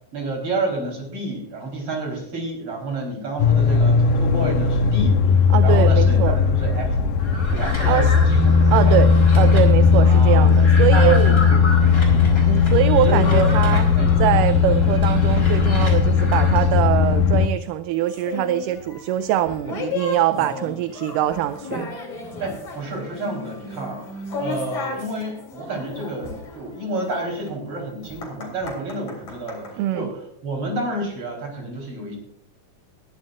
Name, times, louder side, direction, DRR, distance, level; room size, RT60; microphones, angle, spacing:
voice 1, 0.1-7.1 7.5-9.0 10.0-10.5 10.9-12.3 12.9-13.5 13.9-14.2 20.3-20.7 22.4-32.2, right 2 dB, 40° right, 1 dB, 4.9 m, -30 dB
sound 1, 3.4-17.5, left 5 dB, 90° left, 2.6 m, -17 dB
voice 2, 5.5-6.4 7.9-8.2 8.7-11.4 12.5-13.8 14.2-22.0 29.8-30.1, right 12 dB, 80° right, 12 dB, 2.1 m, -23 dB
sound 2, 7.2-16.7, left 1 dB, 15° left, 3.9 m, -33 dB
sound 3, 18.1-29.7, left 4 dB, 55° left, 4.6 m, -35 dB
21.0 x 12.5 x 2.5 m, 0.68 s
omnidirectional pair, 3.9 m